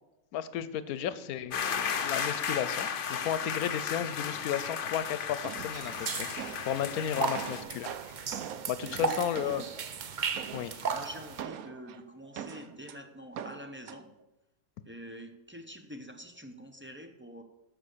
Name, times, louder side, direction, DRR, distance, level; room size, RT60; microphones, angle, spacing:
voice 1, 0.3-8.1 8.7-9.6 10.5-10.8, left 9 dB, 90° left, 14 dB, 1.1 m, -34 dB
sound 1, 1.5-7.6, left 7 dB, 50° left, 0.7 m, -34 dB
sound 2, 5.4-6.7 7.1-9.9 10.3-10.8 11.4-13.0 13.3-14.0, right 9 dB, 80° right, 1.1 m, -42 dB
sound 3, 5.7-11.4, right 6 dB, 50° right, 0.6 m, -36 dB
voice 2, 8.8-9.7 10.8-14.1 14.8-17.4, equal, 10° right, 5 dB, 0.7 m, -46 dB
13.0 x 5.3 x 6.6 m, 0.96 s
omnidirectional pair, 1.5 m